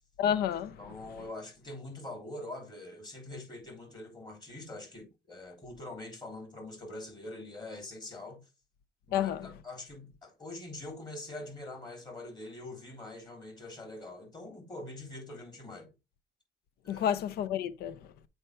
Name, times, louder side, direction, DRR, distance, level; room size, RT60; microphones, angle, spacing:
voice 1, 0.2-0.8 9.1-9.5 16.9-18.0, left 9 dB, 70° left, 0.6 m, -30 dB
voice 2, 0.8-8.4 9.1-15.9 16.8-17.1, left 2 dB, 25° left, 3.3 m, -44 dB
8.0 x 4.4 x 3.3 m
cardioid pair, 110°, 17 cm